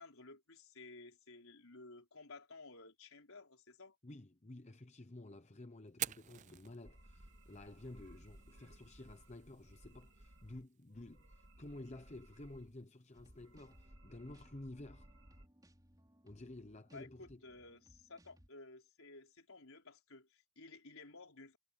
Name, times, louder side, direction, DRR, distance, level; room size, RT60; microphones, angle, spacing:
voice 1, 0.0-4.0 16.9-21.6, left 3 dB, 70° left, 4.5 m, -55 dB
voice 2, 4.0-15.1 16.2-17.4, left 1 dB, 30° left, 0.9 m, -52 dB
Fire, 5.9-13.8, right 13 dB, 30° right, 0.3 m, -51 dB
sound 1, 6.8-10.7 10.9-12.8 13.1-15.5, right 1 dB, 60° right, 3.2 m, -60 dB
sound 2, 13.1-18.5, equal, 15° right, 4.9 m, -67 dB
head